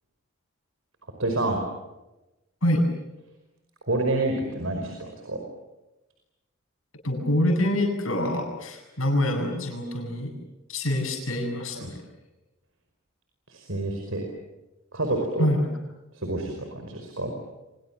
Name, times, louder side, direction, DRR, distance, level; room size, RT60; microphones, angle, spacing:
voice 1, 1.2-1.6 3.9-5.4 11.8-11.9 13.5-14.2 14.9-15.5 16.1-17.3, right 2 dB, 85° right, 3 dB, 5.2 m, -28 dB
voice 2, 7.0-10.3 10.7-12.0 15.4-15.8, left 1 dB, 85° left, 3 dB, 7.8 m, -25 dB
30.0 x 25.5 x 7.5 m, 1.0 s
head